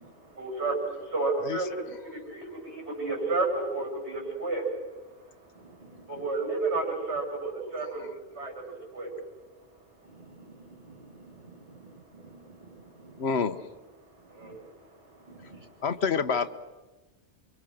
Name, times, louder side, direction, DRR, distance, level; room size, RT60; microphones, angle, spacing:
voice 1, 0.0-4.7 5.5-5.8 6.1-8.1 8.3-9.1 14.2-15.7, right 3 dB, 80° right, -1 dB, 7.7 m, -32 dB
voice 2, 5.6-6.2 10.1-13.3 14.4-14.6 15.3-15.7, right 3 dB, 45° right, 1 dB, 3.3 m, -51 dB
voice 3, 13.2-13.6 15.8-16.5, left 5 dB, 70° left, 12 dB, 1.3 m, -27 dB
29.0 x 25.0 x 6.5 m, 1.2 s
omnidirectional pair, 1.1 m